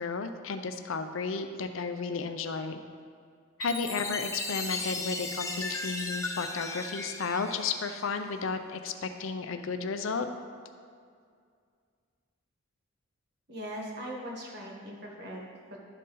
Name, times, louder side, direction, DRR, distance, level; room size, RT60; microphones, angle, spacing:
voice 1, 0.0-2.8 3.6-10.3, left 4 dB, 70° left, 8 dB, 0.5 m, -33 dB
Chime, 3.6-8.3, left 3 dB, 15° left, 0.5 m, -36 dB
voice 2, 13.5-15.8, equal, 50° right, -2 dB, 1.3 m, -40 dB
12.0 x 4.1 x 3.8 m, 2.2 s
head